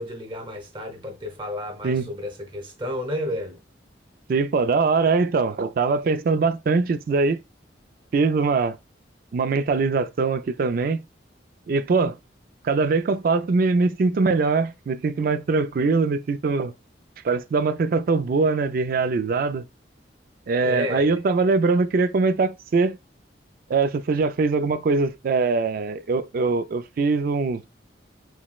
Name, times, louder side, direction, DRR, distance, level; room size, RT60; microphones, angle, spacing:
voice 1, 0.0-3.6 20.6-21.2, left 1 dB, 25° right, 0.7 m, -31 dB
voice 2, 4.3-7.4 8.1-8.8 9.3-11.0 11.7-12.2 12.6-16.7 17.2-19.7 20.5-23.0 23.7-27.6, right 4 dB, 50° right, 0.3 m, -22 dB
5.9 x 2.1 x 2.3 m
head